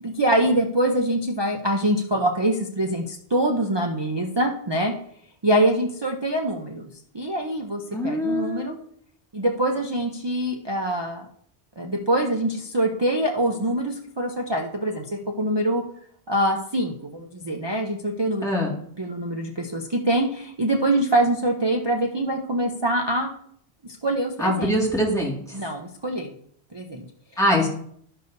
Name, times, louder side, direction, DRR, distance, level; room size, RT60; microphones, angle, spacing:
voice 1, 0.0-4.9 5.4-8.8 9.3-11.3 11.8-15.8 16.3-18.5 19.0-23.3 24.0-24.8 25.5-26.3 26.7-27.1, right 1 dB, 30° right, 0 dB, 0.6 m, -24 dB
voice 2, 7.9-8.8 18.4-18.7 24.4-25.6 27.4-27.7, equal, 5° left, -4 dB, 2.0 m, -23 dB
11.0 x 6.7 x 2.7 m, 0.65 s
omnidirectional pair, 1.2 m